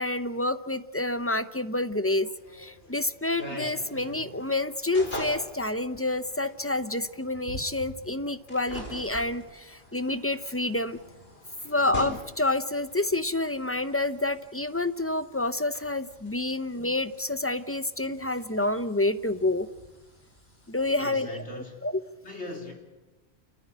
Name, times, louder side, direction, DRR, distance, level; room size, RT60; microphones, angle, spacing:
voice 1, 0.0-11.0 11.6-19.7 20.7-21.4 21.8-21.9, left 2 dB, 15° left, 12 dB, 0.6 m, -28 dB
sound 1, 2.4-21.1, left 1 dB, 65° left, 4.9 m, -45 dB
voice 2, 11.6-11.9 16.4-16.6 20.9-21.9 22.2-22.7, left 1 dB, 85° left, 1 dB, 4.2 m, -41 dB
29.0 x 14.5 x 10.0 m, 1.2 s
omnidirectional pair, 1.1 m